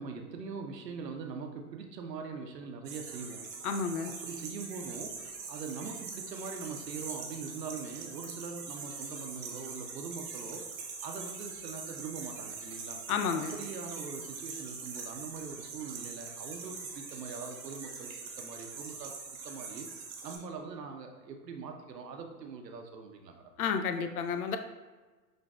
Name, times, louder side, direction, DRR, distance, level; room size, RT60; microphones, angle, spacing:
voice 1, 0.0-3.6 4.1-13.0 13.5-19.9 20.2-23.5, right 5 dB, 80° right, 3 dB, 0.7 m, -42 dB
sound 1, 2.8-20.4, right 5 dB, 25° right, 0.7 m, -43 dB
voice 2, 3.6-4.1 13.1-13.5 23.6-24.6, left 6 dB, 65° left, 7 dB, 0.6 m, -31 dB
6.3 x 2.6 x 2.3 m, 1.3 s
figure-of-eight pair, 100°, 49 cm